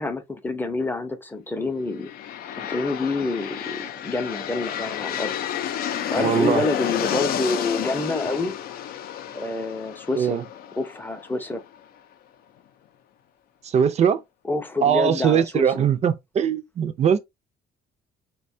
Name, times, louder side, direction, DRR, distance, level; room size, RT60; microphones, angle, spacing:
voice 1, 0.0-2.1 2.5-5.3 6.1-8.6 9.3-10.4 10.8-11.6 14.4-15.9, left 3 dB, 10° left, 0.6 m, -27 dB
sound 1, 1.9-11.7, left 10 dB, 65° left, 0.4 m, -31 dB
voice 2, 6.1-6.6 10.1-10.4 13.7-14.2 14.8-17.2, right 8 dB, 40° right, 0.5 m, -21 dB
4.1 x 2.2 x 2.6 m
cardioid pair, 110°, 17 cm